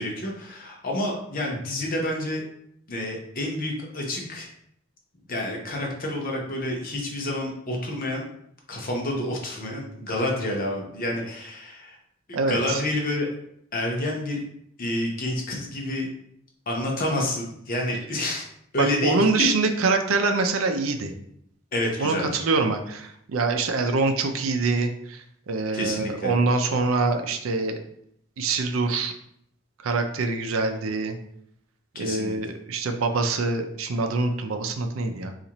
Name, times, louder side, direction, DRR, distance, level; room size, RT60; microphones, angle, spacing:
voice 1, 0.0-2.4 2.9-4.5 5.3-8.2 8.7-12.0 12.3-13.3 13.7-14.5 14.8-16.1 16.7-18.4 18.7-19.2 21.7-22.4 25.7-26.4 31.9-32.3, left 1 dB, 45° left, 0 dB, 0.8 m, -29 dB
voice 2, 12.3-12.8 18.8-21.1 22.0-27.8 28.4-29.1 29.8-31.2 32.0-35.3, right 3 dB, 80° right, 6 dB, 0.4 m, -25 dB
4.0 x 2.5 x 2.9 m, 0.72 s
head